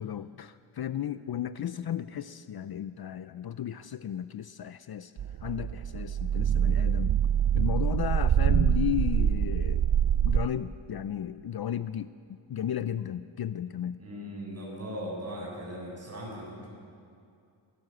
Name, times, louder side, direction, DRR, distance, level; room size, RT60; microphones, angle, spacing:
voice 1, 0.0-5.1 5.4-7.1 7.5-9.9 10.2-14.0, left 10 dB, 55° left, 14 dB, 0.5 m, -34 dB
sound 1, 5.2-10.5, right 9 dB, 50° right, 0.5 m, -25 dB
voice 2, 14.0-16.7, equal, 30° right, -4 dB, 7.7 m, -38 dB
23.5 x 17.5 x 7.9 m, 2.5 s
wide cardioid pair, 175°, 46 cm